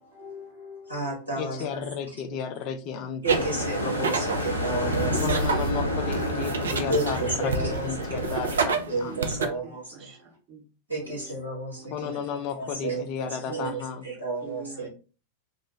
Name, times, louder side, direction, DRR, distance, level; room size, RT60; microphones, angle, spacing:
voice 1, 0.2-1.8 3.2-4.3 4.6-5.1 6.9-7.8 8.3-8.5 8.9-9.8 10.9-12.2 12.6-14.9, right 2 dB, 85° right, 1.2 m, -31 dB
voice 2, 1.4-3.5 5.2-9.1 9.4-9.6 11.9-14.1, left 7 dB, 40° left, 0.4 m, -33 dB
sound 1, 3.2-8.7, left 1 dB, 85° left, 0.7 m, -29 dB
sound 2, 3.3-9.5, right 5 dB, 65° right, 0.4 m, -31 dB
voice 3, 6.1-6.5 7.4-7.8 8.2-8.4 9.1-10.7 13.5-13.9 14.4-14.9, right 4 dB, 40° right, 0.7 m, -43 dB
2.4 x 2.1 x 2.9 m
figure-of-eight pair, 90°, 0 cm